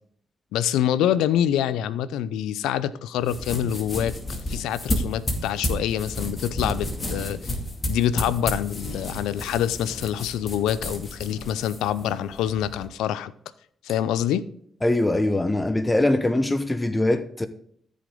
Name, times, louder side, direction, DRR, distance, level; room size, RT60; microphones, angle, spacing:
voice 1, 0.5-7.4 7.8-13.3 13.8-14.4, left 10 dB, 85° left, 0.4 m, -26 dB
sound 1, 3.2-12.9, left 1 dB, 35° left, 2.2 m, -32 dB
voice 2, 14.8-17.5, left 1 dB, 20° left, 0.8 m, -22 dB
14.5 x 5.1 x 3.8 m
supercardioid pair, 50°, 0 cm